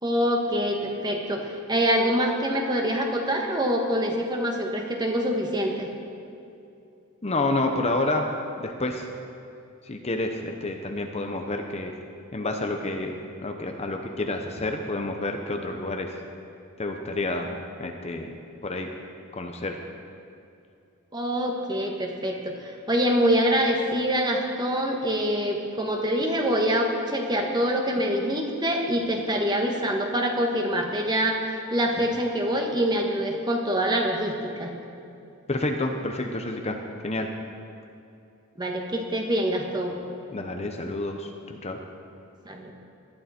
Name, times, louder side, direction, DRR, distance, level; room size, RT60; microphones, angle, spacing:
voice 1, 0.0-5.9 21.1-34.3 34.6-34.7 38.6-40.0 42.4-42.7, equal, 20° right, 1 dB, 1.5 m, -25 dB
voice 2, 7.2-8.3 8.6-9.1 9.8-11.9 12.3-13.1 13.4-16.2 16.8-17.5 17.8-18.4 18.6-18.9 19.3-19.8 35.5-37.3 40.3-41.8, left 2 dB, 30° left, 4 dB, 0.9 m, -29 dB
19.0 x 12.0 x 4.4 m, 2.6 s
head